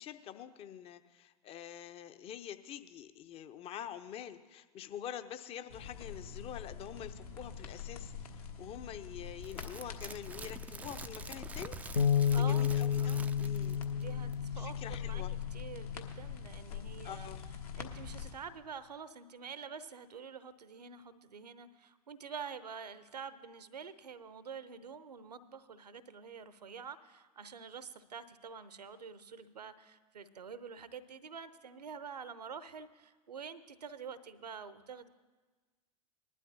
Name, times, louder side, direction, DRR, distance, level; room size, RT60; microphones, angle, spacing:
voice 1, 0.0-11.8 12.4-13.8 14.6-15.3 17.0-17.5, left 10 dB, 30° left, 10 dB, 0.7 m, -46 dB
sound 1, 5.7-18.3, left 7 dB, 65° left, 1.4 m, -45 dB
sound 2, 9.4-14.0 14.3-14.4, right 4 dB, 10° right, 0.3 m, -48 dB
Bass guitar, 12.0-16.4 17.0-18.2, left 8 dB, 80° left, 0.6 m, -33 dB
voice 2, 12.3-13.5 13.9-15.2 15.5-17.3 17.8-35.1, right 6 dB, 75° right, 14 dB, 0.7 m, -47 dB
20.0 x 12.0 x 2.7 m, 1.3 s
figure-of-eight pair, 90°, 21 cm